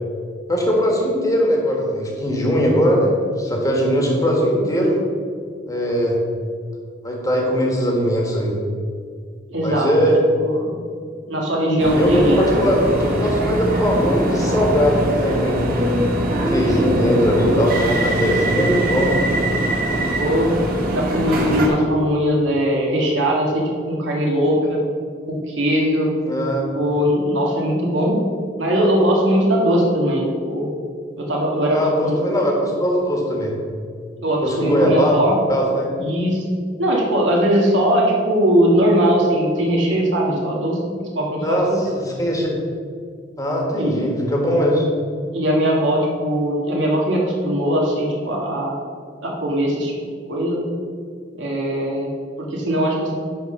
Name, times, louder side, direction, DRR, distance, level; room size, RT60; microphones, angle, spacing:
voice 1, 0.5-5.0 5.7-6.2 7.0-8.5 9.6-10.2 11.9-15.6 16.3-19.2 26.2-26.7 31.7-33.5 34.4-35.2 35.5-35.9 41.4-42.5 43.4-44.8, equal, 20° left, -1 dB, 1.6 m, -20 dB
voice 2, 9.5-9.9 10.3-10.7 11.3-12.5 20.2-20.5 20.8-24.8 25.3-26.1 26.7-28.2 28.6-30.7 31.2-32.2 34.2-35.3 36.0-36.4 36.8-41.8 43.8-44.1 45.3-48.8 49.2-49.9 50.3-50.6 51.3-52.1 52.4-53.1, equal, 90° right, -2 dB, 1.7 m, -20 dB
sound 1, 11.8-21.7, right 1 dB, 50° right, 1.3 m, -22 dB
10.5 x 4.0 x 5.5 m, 2.1 s
head